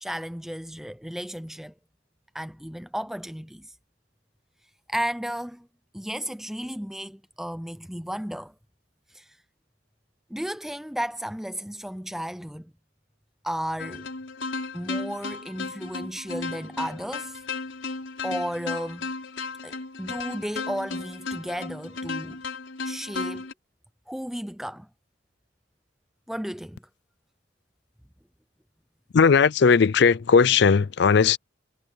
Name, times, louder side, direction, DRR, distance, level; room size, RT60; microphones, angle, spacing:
voice 1, 0.0-1.7 2.3-3.7 4.9-5.7 5.9-8.5 9.1-9.3 10.3-12.7 13.4-14.1 14.7-17.4 18.2-19.1 19.6-22.4 22.8-23.5 24.1-24.9 26.3-26.8, equal, ahead, 0.6 m, -33 dB
sound 1, 13.8-23.5, left 3 dB, 75° left, 4.4 m, -34 dB
voice 2, 29.1-31.4, left 5 dB, 60° left, 0.4 m, -18 dB
head